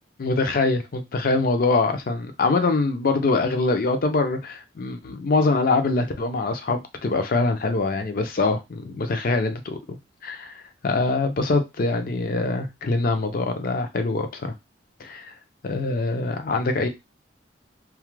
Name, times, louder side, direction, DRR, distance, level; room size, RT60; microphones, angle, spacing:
voice 1, 0.2-9.8 10.2-14.5 15.0-15.3 15.6-16.9, left 3 dB, 50° left, 0.4 m, -24 dB
2.3 x 2.0 x 3.0 m
head